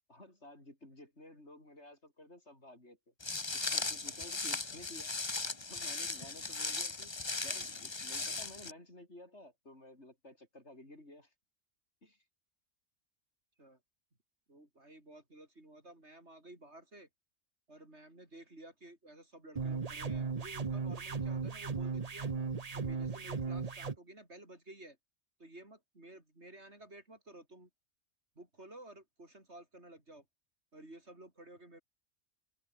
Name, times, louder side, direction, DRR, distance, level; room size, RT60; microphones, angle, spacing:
voice 1, 0.1-3.1 3.5-5.4 5.7-11.3 12.0-12.2, left 1 dB, 60° left, 7.7 m, -54 dB
Walk footsteps, 3.2-8.7, left 3 dB, 25° left, 1.1 m, -38 dB
voice 2, 14.5-17.1 17.7-22.3 22.7-25.0 25.4-27.7 28.4-30.3 30.7-31.8, right 1 dB, 60° right, 6.6 m, -54 dB
sound 1, 19.6-24.0, right 5 dB, 30° right, 1.0 m, -36 dB
omnidirectional pair, 1.3 m